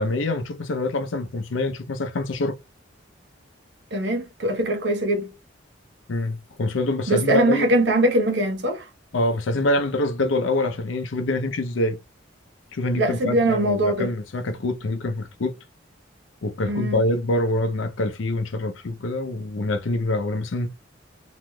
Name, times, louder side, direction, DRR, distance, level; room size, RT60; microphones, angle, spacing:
voice 1, 0.0-2.6 6.1-7.7 9.1-12.0 12.7-15.6 16.4-20.7, left 2 dB, 75° left, 0.6 m, -25 dB
voice 2, 3.9-5.3 7.1-8.9 13.0-14.1 16.6-17.0, right 1 dB, 60° right, 1.0 m, -22 dB
3.1 x 3.0 x 2.2 m
head